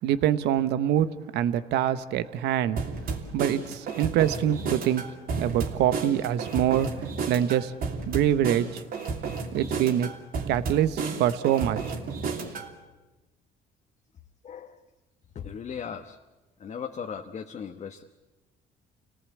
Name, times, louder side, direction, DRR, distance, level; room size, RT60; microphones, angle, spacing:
voice 1, 0.0-1.1 1.3-2.8 3.3-5.0 5.4-6.9 7.3-7.7 8.1-8.8 9.5-10.1 10.5-12.0, right 11 dB, 80° right, 13 dB, 1.1 m, -25 dB
sound 1, 2.8-12.7, right 4 dB, 60° right, 3.1 m, -32 dB
voice 2, 14.4-14.8 15.3-16.2 16.6-18.0, left 7 dB, 40° left, 3 dB, 1.3 m, -37 dB
27.5 x 18.0 x 8.5 m, 1.1 s
cardioid pair, 110°, 17 cm